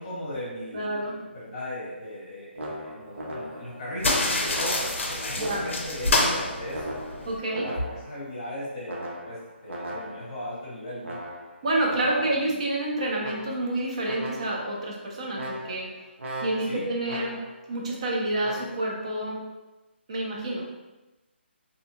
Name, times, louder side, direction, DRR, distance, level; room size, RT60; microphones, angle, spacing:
voice 1, 0.0-7.0 7.5-11.2 12.0-12.5 16.7-16.8, left 1 dB, 25° left, -8 dB, 0.9 m, -37 dB
voice 2, 0.7-1.1 5.4-5.7 7.2-7.7 11.6-15.9 16.4-17.4 17.7-19.4 20.1-20.7, right 1 dB, 30° right, -2 dB, 0.5 m, -28 dB
sound 1, 2.6-3.9 4.5-6.0 6.7-8.2 8.9-10.5 11.0-12.5 13.2-13.8 14.0-14.8 15.3-17.7 18.4-18.8, right 1 dB, 80° right, 0.7 m, -38 dB
sound 2, 4.0-7.4, left 2 dB, 80° left, 0.5 m, -27 dB
2.6 x 2.1 x 2.6 m, 1.1 s
hypercardioid pair, 175°, 6 cm